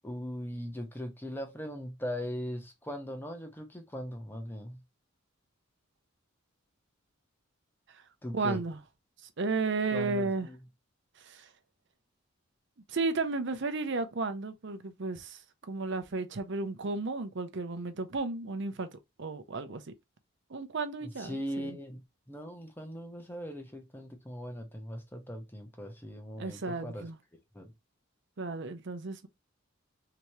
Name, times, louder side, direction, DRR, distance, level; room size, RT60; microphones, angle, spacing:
voice 1, 0.0-4.8 8.2-8.6 9.9-10.6 21.0-27.1 27.5-27.7, equal, 10° left, 0.8 m, -39 dB
voice 2, 8.3-8.8 9.4-10.5 11.2-11.5 12.9-15.4 15.7-18.9 19.2-19.9 20.5-21.8 26.4-27.2 28.4-29.3, right 3 dB, 55° right, 0.6 m, -33 dB
3.4 x 2.9 x 3.1 m
head